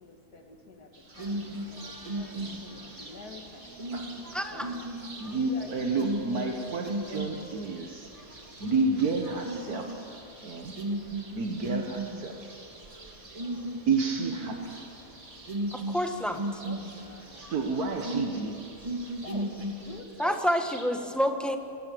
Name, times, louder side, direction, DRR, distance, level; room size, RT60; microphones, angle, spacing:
voice 1, 0.0-3.7 4.5-4.8 5.2-6.7 7.1-7.2 11.6-11.9 16.3-17.7 19.2-20.4 20.7-21.6, left 3 dB, 90° left, 4 dB, 2.5 m, -47 dB
sound 1, 0.9-20.9, right 2 dB, 40° right, 2.7 m, -51 dB
sound 2, 1.1-20.0, right 1 dB, 20° right, 2.1 m, -37 dB
voice 2, 4.3-4.7 15.7-16.4 20.2-21.6, equal, ahead, 5 dB, 1.2 m, -28 dB
voice 3, 5.2-8.1 8.6-10.0 10.4-10.8 11.3-12.5 13.9-14.8 17.3-18.6, right 4 dB, 75° right, 2 dB, 1.9 m, -30 dB
24.0 x 20.5 x 7.9 m, 2.6 s
omnidirectional pair, 1.6 m